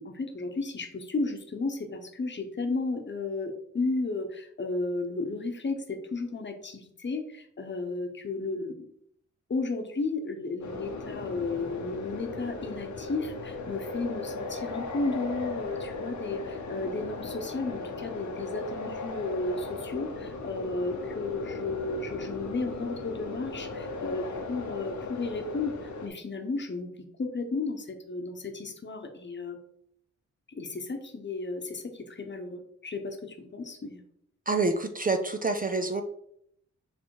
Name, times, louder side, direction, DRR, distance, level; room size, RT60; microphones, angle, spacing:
voice 1, 0.0-8.9 9.5-26.9 27.2-29.6 30.5-34.0, left 3 dB, 40° left, 5 dB, 1.0 m, -33 dB
sound 1, 10.6-26.1, left 3 dB, 75° left, 1.0 m, -37 dB
voice 2, 34.5-36.0, right 3 dB, 30° right, 6 dB, 0.5 m, -27 dB
6.5 x 3.5 x 4.8 m, 0.71 s
wide cardioid pair, 140°, 30 cm